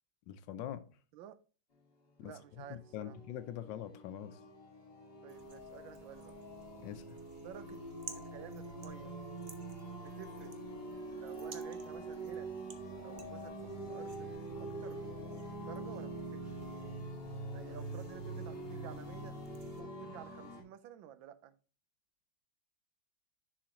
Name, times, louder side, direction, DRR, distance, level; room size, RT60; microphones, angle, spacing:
voice 1, 0.3-0.8 2.2-2.3 2.7-4.4 6.8-7.2, left 11 dB, 75° left, 1.2 m, -43 dB
voice 2, 2.2-3.2 5.2-6.3 7.4-7.8 8.1-9.2 10.0-10.5 11.1-12.5 13.0-16.6 17.5-19.4 19.8-21.5, right 10 dB, 80° right, 1.4 m, -52 dB
sound 1, 2.5-20.6, right 2 dB, 30° left, 1.9 m, -45 dB
sound 2, 5.3-19.8, right 4 dB, 60° right, 0.5 m, -57 dB
10.0 x 4.9 x 2.9 m
omnidirectional pair, 2.2 m